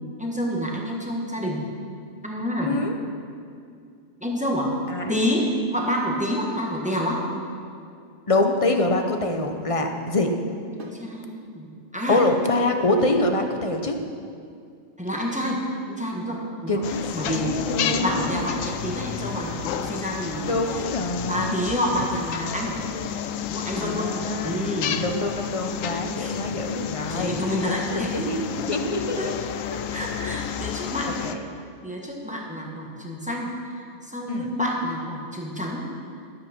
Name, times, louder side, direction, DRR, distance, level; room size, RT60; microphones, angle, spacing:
voice 1, 0.2-1.7 2.2-2.8 4.2-4.7 5.1-7.2 10.7-12.2 15.0-16.8 17.1-20.9 21.3-22.8 23.5-24.1 24.4-25.0 26.2-26.4 27.1-28.7 29.2-29.3 29.7-31.1 31.8-35.9, equal, 5° right, -1 dB, 1.4 m, -28 dB
voice 2, 2.6-2.9 4.9-5.1 8.3-10.3 12.1-14.0 16.7-18.5 20.5-21.6 23.8-24.5 24.9-27.4 27.9-28.0 28.3-29.3 31.2-31.4 34.3-34.5, left 2 dB, 30° left, 4 dB, 0.7 m, -25 dB
sound 1, 10.8-11.1 13.0-13.3 15.1-15.4 17.3-17.6 19.5-19.8 21.6-21.9 23.8-24.1 25.9-26.2, right 2 dB, 45° right, 1.3 m, -41 dB
sound 2, 16.8-31.4, left 9 dB, 90° left, 1.0 m, -31 dB
12.5 x 7.9 x 5.9 m, 2.4 s
omnidirectional pair, 1.3 m